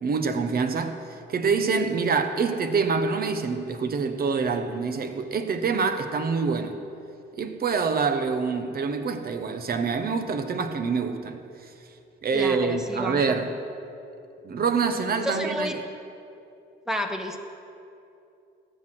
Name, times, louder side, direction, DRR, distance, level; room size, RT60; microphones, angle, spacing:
voice 1, 0.0-1.0 1.3-6.8 7.4-11.4 12.2-13.5 14.4-15.7, right 5 dB, 50° right, 1.0 m, -26 dB
voice 2, 12.3-13.4 15.2-15.8 16.9-17.4, equal, 5° right, 1.1 m, -30 dB
14.0 x 8.0 x 6.1 m
cardioid pair, 90°, 20 cm